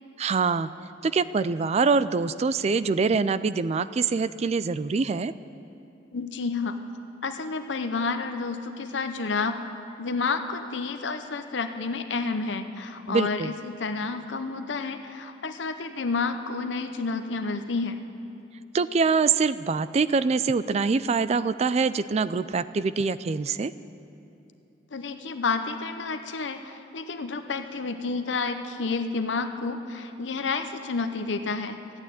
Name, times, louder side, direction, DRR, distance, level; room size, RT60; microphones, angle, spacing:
voice 1, 0.2-0.7 1.0-5.3 13.1-13.5 18.7-23.7, right 4 dB, 35° right, 15 dB, 0.3 m, -24 dB
voice 2, 6.1-6.8 7.2-9.6 10.0-18.0 24.9-31.8, left 4 dB, 85° left, 7 dB, 0.7 m, -30 dB
14.5 x 8.8 x 9.2 m, 2.9 s
head